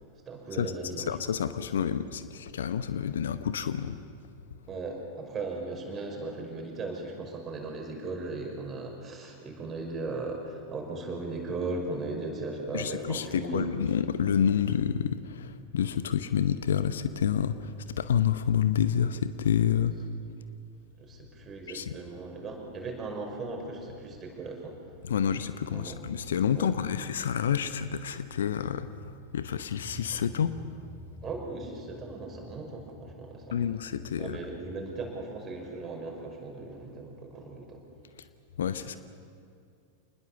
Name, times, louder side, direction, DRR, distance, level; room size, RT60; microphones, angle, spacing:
voice 1, 0.3-1.2 4.7-13.7 21.0-24.8 25.7-26.0 26.6-26.7 31.2-33.7 34.2-37.8, right 3 dB, 25° right, 1 dB, 5.5 m, -37 dB
voice 2, 1.1-4.0 12.7-20.1 21.7-21.8 25.1-28.9 29.3-30.5 33.5-34.4 38.6-39.0, left 8 dB, 65° left, 13 dB, 0.9 m, -28 dB
sound 1, 29.8-38.3, left 1 dB, ahead, 2.0 m, -50 dB
27.0 x 20.5 x 7.2 m, 2.4 s
figure-of-eight pair, 90°, 0 cm